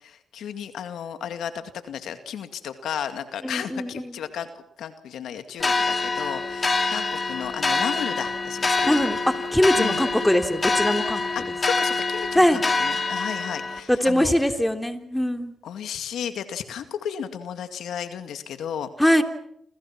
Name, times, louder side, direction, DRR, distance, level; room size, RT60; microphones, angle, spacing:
voice 1, 0.0-9.1 9.8-10.1 11.3-14.3 15.6-18.9, left 8 dB, 80° left, 9 dB, 2.1 m, -34 dB
voice 2, 3.4-4.2 8.9-11.2 12.3-12.6 13.9-15.5 19.0-19.2, equal, 5° left, 7 dB, 3.3 m, -22 dB
sound 1, 5.6-13.8, left 3 dB, 35° left, 4.1 m, -25 dB
28.5 x 28.0 x 6.0 m, 0.74 s
cardioid pair, 70°, 0 cm